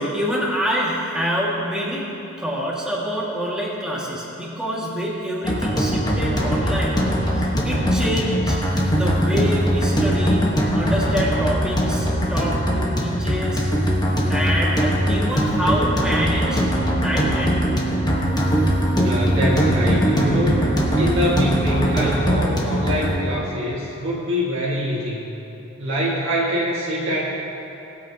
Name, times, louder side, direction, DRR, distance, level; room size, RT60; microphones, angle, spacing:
voice 1, 0.0-2.1 2.4-8.6 8.9-10.4 10.7-13.7 14.3-16.6 17.0-17.8, equal, 5° right, -6 dB, 1.9 m, -26 dB
sound 1, 5.4-23.1, equal, 20° left, 1.2 m, -21 dB
Organ, 16.2-22.8, right 4 dB, 90° left, 1.5 m, -31 dB
voice 2, 19.0-20.6 20.9-25.3 25.8-27.3, equal, 60° right, -6 dB, 1.9 m, -24 dB
19.5 x 8.4 x 2.9 m, 3.0 s
head